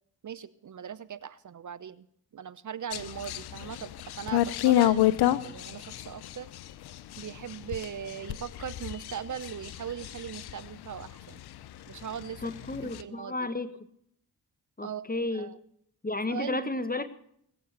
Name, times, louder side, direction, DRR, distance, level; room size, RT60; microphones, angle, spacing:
voice 1, 0.2-2.0 2.3-6.5 7.2-11.4 11.9-12.4 13.0-13.3 14.8-15.1 15.3-15.5 16.3-16.7, right 8 dB, 50° right, 17 dB, 0.8 m, -39 dB
sound 1, 2.9-11.7 12.0-13.0, left 14 dB, 80° left, 0.7 m, -29 dB
voice 2, 12.4-13.8 14.8-15.5 16.0-17.1, left 2 dB, 25° left, 13 dB, 1.6 m, -32 dB
20.0 x 8.3 x 7.4 m, 0.69 s
supercardioid pair, 40°, 38 cm